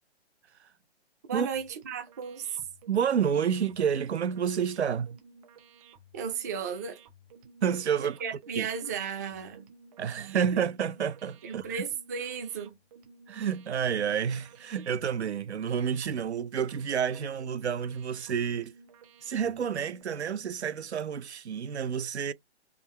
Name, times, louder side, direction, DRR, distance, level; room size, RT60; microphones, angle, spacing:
voice 1, 1.3-2.7 6.1-7.0 8.0-9.7 10.3-10.6 11.4-12.8, right 6 dB, 15° right, 0.4 m, -35 dB
sound 1, 1.5-20.0, right 4 dB, 30° right, 1.1 m, -56 dB
voice 2, 2.9-5.2 7.6-8.2 8.6-8.7 10.0-11.6 13.3-18.7 19.2-22.3, right 7 dB, 70° right, 0.6 m, -29 dB
3.8 x 3.4 x 3.1 m
figure-of-eight pair, 135°, 34 cm